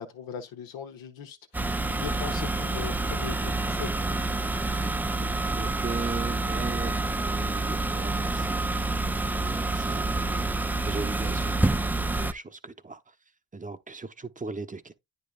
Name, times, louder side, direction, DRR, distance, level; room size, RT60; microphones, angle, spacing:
voice 1, 0.0-4.9, left 8 dB, 80° left, 1.1 m, -40 dB
sound 1, 1.5-12.3, right 2 dB, 5° right, 0.3 m, -28 dB
voice 2, 5.6-13.1 13.5-14.9, right 4 dB, 20° right, 0.8 m, -39 dB
9.5 x 5.4 x 2.3 m
supercardioid pair, 50°, 35 cm